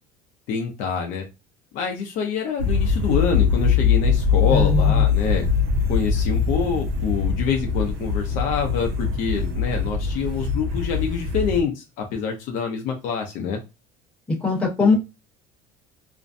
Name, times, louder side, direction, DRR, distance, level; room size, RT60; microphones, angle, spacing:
voice 1, 0.5-1.2 1.7-5.5 5.9-13.6 14.8-14.9, left 6 dB, 50° left, 2 dB, 0.5 m, -26 dB
sound 1, 2.6-11.6, left 5 dB, 70° right, 0.6 m, -22 dB
voice 2, 4.5-5.0 14.4-14.9, left 3 dB, 5° left, -5 dB, 0.9 m, -20 dB
2.5 x 2.1 x 2.5 m, 0.26 s
cardioid pair, 175°, 18 cm